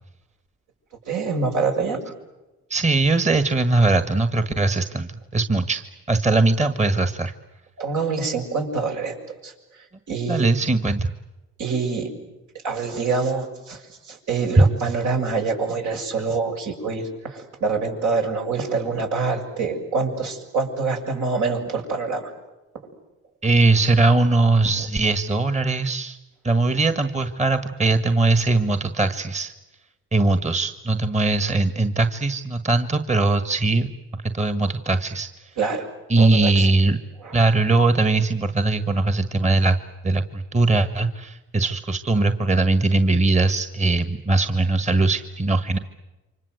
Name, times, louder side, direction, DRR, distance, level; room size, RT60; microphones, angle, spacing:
voice 1, 1.1-2.0 6.3-6.4 7.8-9.2 9.4-10.5 11.6-12.1 12.6-22.3 35.6-35.9 36.2-36.7 37.2-37.4, right 4 dB, 70° right, 2 dB, 7.2 m, -26 dB
voice 2, 2.7-7.3 10.3-11.1 14.6-14.7 23.4-26.2 26.4-29.5 30.1-33.9 34.3-35.3 36.1-37.0 37.3-39.8 40.0-45.8, right 2 dB, 25° right, 10 dB, 1.6 m, -20 dB
29.0 x 25.5 x 8.0 m, 1.1 s
cardioid pair, 90°, 30 cm